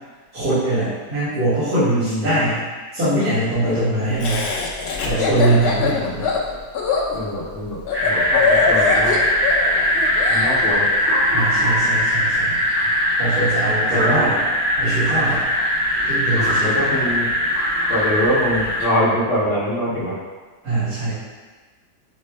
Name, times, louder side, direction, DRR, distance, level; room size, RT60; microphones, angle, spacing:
voice 1, 0.3-2.6 2.9-4.4 5.0-6.3 11.3-12.6 13.2-14.4 14.8-15.4 16.1-16.8 20.6-21.1, right 2 dB, 65° right, -17 dB, 2.2 m, -22 dB
voice 2, 1.9-2.4 3.7-4.2 5.1-5.4 7.1-9.2 10.3-10.9 13.9-14.3 16.3-17.3 17.9-20.2, equal, 55° left, -8 dB, 1.0 m, -24 dB
Laughter, 4.2-10.6, left 5 dB, 75° left, 0.5 m, -22 dB
sound 1, 7.9-18.9, equal, 20° right, 0.7 m, -20 dB
6.6 x 2.2 x 3.3 m, 1.4 s
omnidirectional pair, 1.8 m